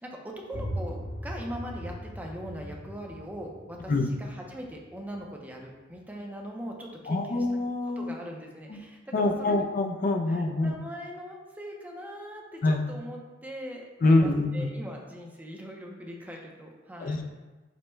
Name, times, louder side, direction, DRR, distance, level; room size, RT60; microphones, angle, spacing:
voice 1, 0.0-7.5 7.9-9.7 10.3-17.3, equal, 10° right, 0 dB, 0.5 m, -41 dB
sound 1, 0.5-6.1, equal, 20° left, 0.8 m, -39 dB
voice 2, 7.1-8.1 8.7-8.8 9.1-10.8 12.6-12.9 14.0-14.7 17.0-17.2, left 2 dB, 45° left, 4 dB, 0.4 m, -25 dB
5.2 x 2.1 x 4.4 m, 1.2 s
head